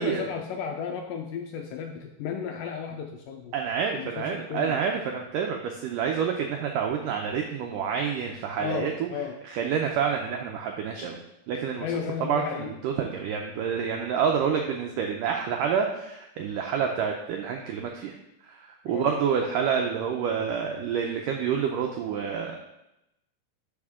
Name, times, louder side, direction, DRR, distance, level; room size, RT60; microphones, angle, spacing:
voice 1, 0.0-3.5 4.0-4.8 8.6-9.4 11.8-12.7 18.9-19.1, left 7 dB, 85° left, 3 dB, 2.0 m, -34 dB
voice 2, 3.5-9.1 9.4-11.2 11.5-11.9 12.2-18.1 18.4-22.7, right 7 dB, 90° right, 2 dB, 1.9 m, -28 dB
11.5 x 5.2 x 3.6 m, 0.87 s
omnidirectional pair, 4.6 m